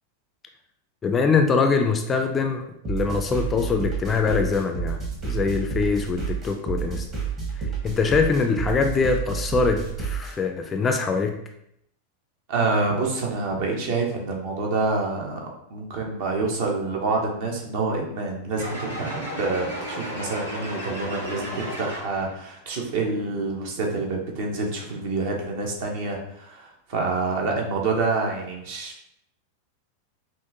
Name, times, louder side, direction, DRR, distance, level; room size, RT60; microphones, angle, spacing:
voice 1, 1.0-7.1 7.6-11.4, left 5 dB, 20° left, 5 dB, 0.4 m, -23 dB
sound 1, 2.8-10.3, right 6 dB, 30° right, 1.2 m, -30 dB
voice 2, 12.5-28.9, right 3 dB, 50° right, 1 dB, 0.9 m, -27 dB
sound 2, 18.6-22.4, equal, 80° right, 1.4 m, -33 dB
5.7 x 2.5 x 2.8 m, 0.76 s
figure-of-eight pair, 90°, 0 cm